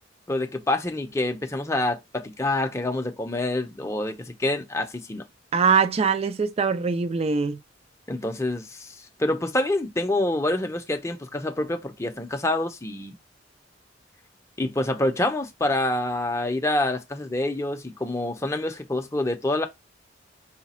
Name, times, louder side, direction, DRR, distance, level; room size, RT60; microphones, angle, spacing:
voice 1, 0.3-5.2 8.1-13.2 14.6-19.7, left 2 dB, 15° left, 0.6 m, -27 dB
voice 2, 5.5-7.6, right 5 dB, 30° right, 0.4 m, -22 dB
4.9 x 2.2 x 4.2 m
head